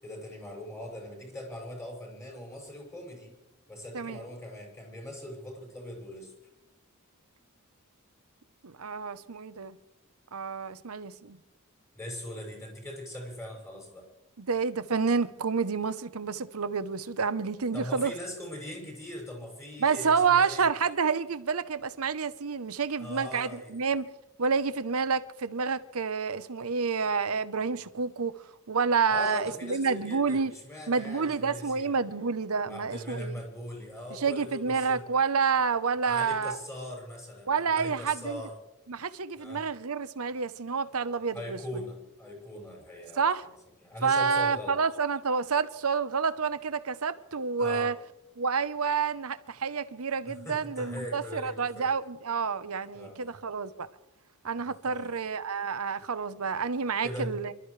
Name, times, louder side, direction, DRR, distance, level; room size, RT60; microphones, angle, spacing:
voice 1, 0.0-3.3 3.7-6.3 11.9-14.1 17.7-20.7 23.0-23.7 29.1-31.9 32.7-35.0 36.0-38.6 39.4-39.6 41.3-43.5 43.8-44.8 47.6-47.9 50.2-51.9 52.9-53.2 54.6-55.1 57.0-57.3, left 1 dB, 15° left, 6.4 m, -40 dB
voice 2, 8.6-9.8 10.3-11.4 14.4-18.1 19.8-24.1 24.4-28.4 28.7-30.5 30.9-33.3 34.1-36.6 37.5-38.4 38.9-41.6 43.2-43.4 44.0-48.0 48.4-53.9 54.4-57.5, right 5 dB, 80° right, 0.9 m, -29 dB
28.0 x 13.0 x 3.3 m
head